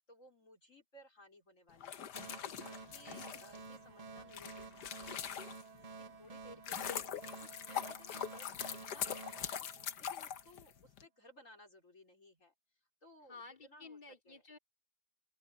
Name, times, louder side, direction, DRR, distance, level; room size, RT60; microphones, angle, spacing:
voice 1, 0.0-2.1 2.6-5.6 6.0-9.7 10.0-12.5 13.0-14.0 14.2-14.4, left 1 dB, 45° left, 4.8 m, -60 dB
sound 1, 1.7-5.8 6.3-11.0, left 9 dB, 70° left, 1.6 m, -42 dB
sound 2, 2.1-10.5, right 4 dB, 80° right, 0.3 m, -52 dB
voice 2, 13.3-14.6, left 4 dB, 25° left, 3.9 m, -53 dB
open air
omnidirectional pair, 1.9 m